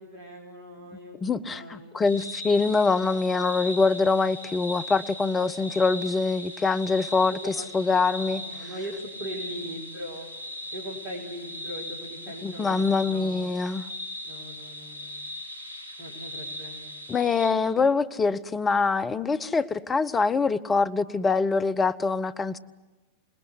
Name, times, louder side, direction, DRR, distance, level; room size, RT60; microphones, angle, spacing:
voice 1, 0.0-2.0 7.3-8.1 8.4-10.3 10.7-13.5 14.2-15.3 16.0-17.0, equal, 45° right, -3 dB, 4.3 m, -40 dB
voice 2, 1.2-7.4 7.7-8.4 12.4-13.8 17.1-22.6, left 4 dB, 15° left, 11 dB, 0.9 m, -24 dB
sound 1, 2.0-17.5, left 1 dB, 75° left, 5.0 m, -39 dB
27.0 x 20.0 x 8.1 m, 1.2 s
figure-of-eight pair, 90°, 0 cm